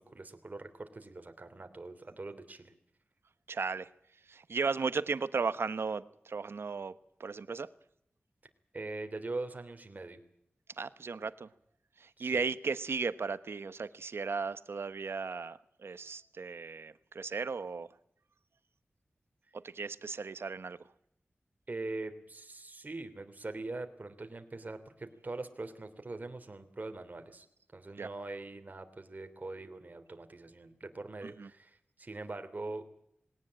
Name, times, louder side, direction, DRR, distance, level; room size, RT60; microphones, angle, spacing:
voice 1, 0.0-2.7 8.7-10.2 12.2-12.5 21.7-27.4 27.7-32.8, right 2 dB, 45° right, 7 dB, 3.2 m, -42 dB
voice 2, 3.5-3.9 4.3-6.9 7.2-7.7 10.8-11.5 12.0-17.9 19.5-20.8 28.0-28.1 31.2-31.5, right 4 dB, 80° right, 14 dB, 1.1 m, -35 dB
20.5 x 18.0 x 8.7 m, 0.72 s
wide cardioid pair, 85°, 4 cm